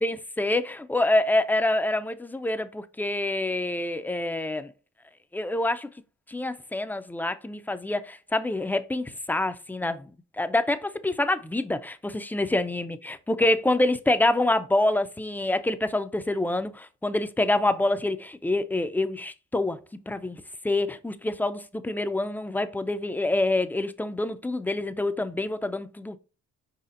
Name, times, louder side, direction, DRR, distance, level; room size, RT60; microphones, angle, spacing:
voice 1, 0.0-4.7 5.3-5.9 6.3-10.1 10.4-19.8 20.1-20.4 20.6-26.2, left 2 dB, 5° left, 0.3 m, -26 dB
4.9 x 4.1 x 2.5 m
cardioid pair, 90°, 30 cm